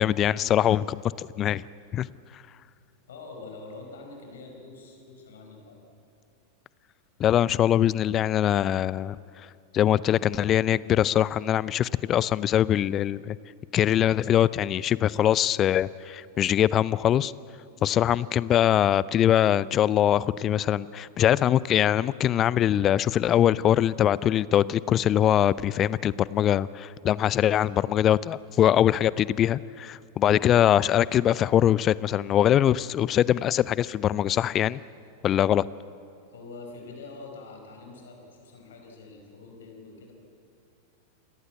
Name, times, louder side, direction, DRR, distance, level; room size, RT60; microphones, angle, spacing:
voice 1, 0.0-1.6 1.9-2.1 7.2-9.2 9.7-13.4 13.7-17.3 17.8-34.8 35.2-35.7, left 11 dB, 30° left, 20 dB, 0.5 m, -22 dB
voice 2, 3.1-5.8 36.3-40.1, left 3 dB, 60° left, 2 dB, 5.0 m, -45 dB
28.5 x 18.0 x 8.4 m, 2.5 s
figure-of-eight pair, 90°, 0 cm